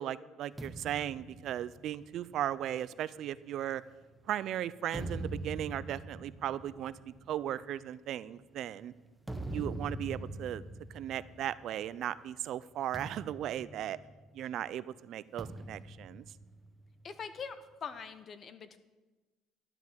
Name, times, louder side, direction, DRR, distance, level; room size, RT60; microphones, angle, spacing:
voice 1, 0.0-3.8 4.3-6.9 7.3-8.9 9.5-10.6 10.9-14.0 14.3-16.2, right 11 dB, 55° right, 17 dB, 0.4 m, -37 dB
sound 1, 0.6-4.2 4.7-12.1 12.4-12.6 12.9-14.6 15.4-17.1, right 1 dB, 10° right, 0.7 m, -44 dB
voice 2, 17.0-18.8, left 6 dB, 35° left, 11 dB, 0.8 m, -43 dB
12.0 x 5.9 x 9.0 m, 1.2 s
cardioid pair, 140°, 0 cm